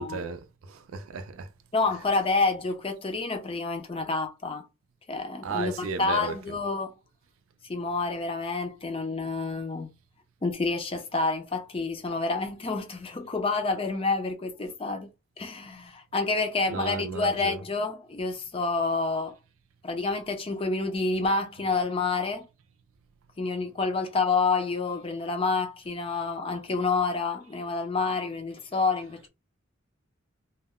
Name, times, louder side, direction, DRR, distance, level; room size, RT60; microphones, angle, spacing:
voice 1, 0.0-1.5 5.4-6.4 16.7-17.6, right 4 dB, 75° right, 0.4 m, -34 dB
voice 2, 1.7-4.7 5.1-6.9 7.7-9.9 10.4-15.1 15.4-19.4 19.8-22.4 23.4-29.3, left 3 dB, 25° left, 0.5 m, -28 dB
2.3 x 2.1 x 3.5 m
head